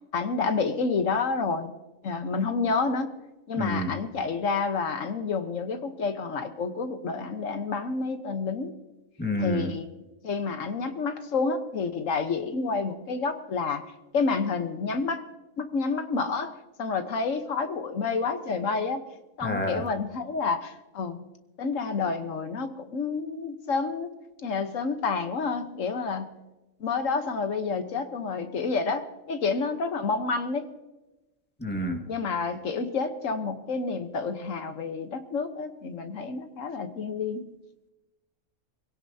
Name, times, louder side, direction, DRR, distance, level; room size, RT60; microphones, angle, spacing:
voice 1, 0.1-1.7 2.0-3.1 3.5-8.7 9.4-9.9 10.2-13.8 14.1-15.2 15.6-19.0 19.4-21.2 21.6-24.1 24.4-26.3 26.8-30.7 32.1-37.4, left 4 dB, 70° left, 8 dB, 1.5 m, -29 dB
voice 2, 3.6-3.9 9.2-9.7 19.4-19.8 31.6-32.0, left 1 dB, 10° left, 2 dB, 1.7 m, -28 dB
24.0 x 17.0 x 2.8 m, 1.0 s
omnidirectional pair, 1.4 m